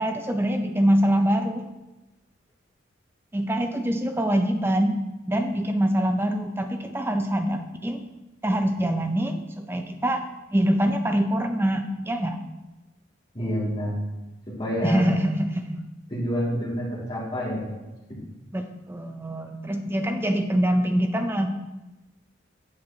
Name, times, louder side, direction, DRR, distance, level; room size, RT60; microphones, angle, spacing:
voice 1, 0.0-1.6 3.3-5.0 5.2-8.0 8.4-10.2 10.5-12.4 14.8-15.8 18.5-21.5, right 1 dB, 10° right, 6 dB, 0.4 m, -24 dB
voice 2, 13.3-14.0 14.6-15.0 16.1-17.6 18.1-18.2, equal, 25° left, -8 dB, 2.3 m, -28 dB
7.7 x 5.8 x 2.8 m, 1.0 s
head